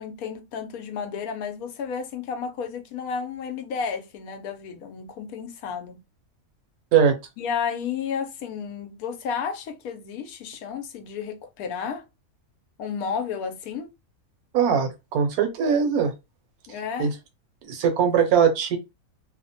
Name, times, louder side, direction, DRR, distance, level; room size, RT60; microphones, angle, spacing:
voice 1, 0.0-6.0 7.4-12.0 12.8-13.9 16.7-17.1, left 6 dB, 85° left, 1.1 m, -32 dB
voice 2, 14.5-16.1 17.0-17.1 17.6-18.8, right 7 dB, 80° right, 1.2 m, -21 dB
2.8 x 2.1 x 2.7 m
omnidirectional pair, 1.5 m